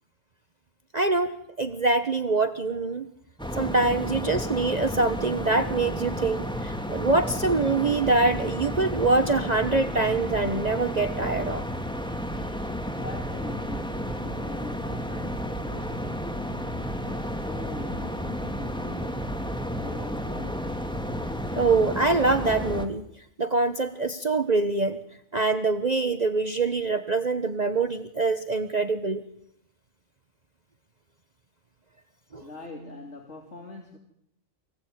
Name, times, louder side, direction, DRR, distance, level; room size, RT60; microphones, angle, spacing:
voice 1, 0.9-3.1 3.5-11.6 21.5-23.0 23.4-25.0 25.3-29.2 32.3-32.4, right 3 dB, 35° right, 9 dB, 1.2 m, -24 dB
sound 1, 3.4-22.9, equal, 5° left, 2.3 m, -32 dB
voice 2, 12.6-20.9 32.4-34.0, left 3 dB, 60° left, 3 dB, 3.3 m, -43 dB
26.0 x 20.0 x 9.5 m, 0.78 s
omnidirectional pair, 1.4 m